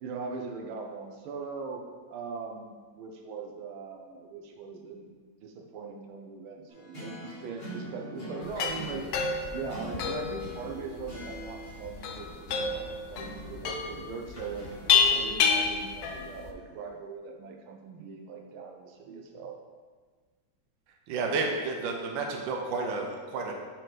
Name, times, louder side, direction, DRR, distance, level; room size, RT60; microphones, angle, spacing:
voice 1, 0.0-1.8 2.1-5.1 5.4-9.1 9.5-14.7 15.1-19.6, right 5 dB, 90° right, 1 dB, 1.6 m, -40 dB
sound 1, 6.7-15.3, right 1 dB, 30° left, 2.1 m, -44 dB
sound 2, 8.4-16.5, left 6 dB, 80° left, 0.8 m, -29 dB
voice 2, 21.1-23.5, right 3 dB, 70° right, 1 dB, 1.4 m, -31 dB
6.3 x 4.5 x 3.9 m, 1.5 s
omnidirectional pair, 2.2 m